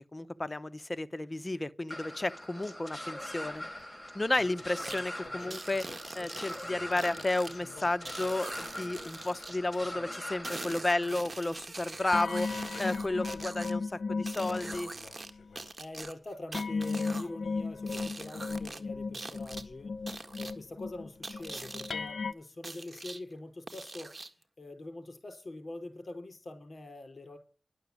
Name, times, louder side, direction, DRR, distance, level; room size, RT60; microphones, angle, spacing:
voice 1, 0.1-3.6 4.1-12.5 12.8-14.9, left 2 dB, 35° left, 0.9 m, -32 dB
sound 1, 1.9-11.1, left 1 dB, ahead, 3.5 m, -43 dB
sound 2, 4.3-9.5 9.8-10.2 10.8-11.4 12.1-15.7 16.5-22.3, left 4 dB, 90° left, 0.8 m, -37 dB
sound 3, 4.8-5.0 5.5-7.5 8.0-9.5 10.4-13.7 14.3-15.3 15.6-17.3 17.9-18.8 19.1-19.6 20.1-20.5 21.2-21.9 22.6-23.2 23.7-24.4, right 2 dB, 45° right, 1.7 m, -43 dB
voice 2, 15.8-20.0 20.4-27.4, left 2 dB, 55° left, 4.6 m, -44 dB
11.5 x 6.6 x 8.6 m
cardioid pair, 45°, 0 cm